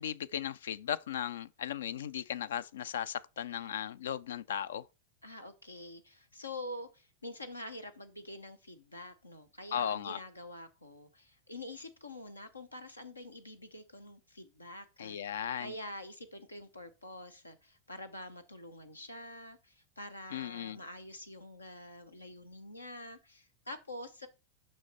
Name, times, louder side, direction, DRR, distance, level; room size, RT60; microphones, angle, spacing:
voice 1, 0.0-4.9 9.7-10.2 15.0-15.8 20.3-20.8, left 9 dB, 70° left, 0.4 m, -36 dB
voice 2, 5.2-15.2 15.6-24.3, left 1 dB, 90° left, 0.9 m, -46 dB
6.2 x 5.5 x 4.1 m
figure-of-eight pair, 90°, 0 cm